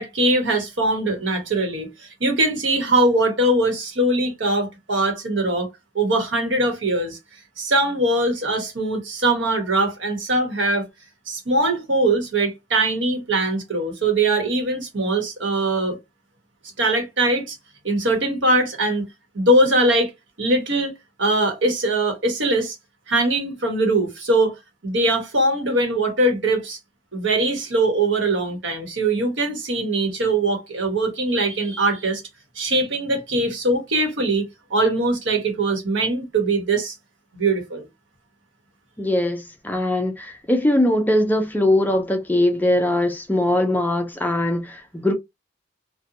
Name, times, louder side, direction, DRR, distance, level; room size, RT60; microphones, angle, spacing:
voice 1, 0.0-5.7 5.9-7.2 7.6-10.8 11.3-16.0 16.8-17.6 17.8-19.1 19.3-20.1 20.4-20.9 21.2-22.8 23.1-24.6 24.8-26.8 27.1-32.2 32.6-36.9 37.3-37.8, right 2 dB, 70° right, 1.0 m, -21 dB
voice 2, 39.0-45.1, left 1 dB, 10° left, 0.4 m, -21 dB
2.8 x 2.1 x 2.6 m
head